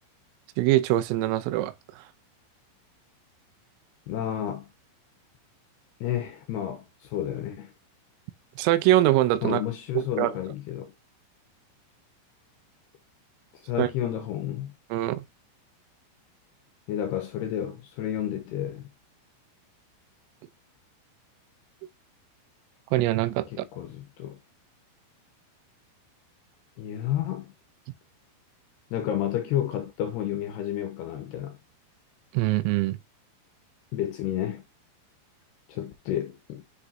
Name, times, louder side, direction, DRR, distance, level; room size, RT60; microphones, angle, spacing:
voice 1, 0.6-2.0 8.6-9.6 10.0-10.3 13.8-13.9 14.9-15.2 22.9-23.7 32.3-33.0, right 15 dB, 90° right, 3.4 m, -23 dB
voice 2, 4.1-4.7 6.0-7.7 9.4-10.9 13.5-14.7 16.9-18.9 23.5-24.4 26.8-27.5 28.9-31.6 33.9-34.6 35.7-36.6, left 11 dB, 70° left, 2.6 m, -31 dB
10.0 x 5.2 x 2.8 m
omnidirectional pair, 5.8 m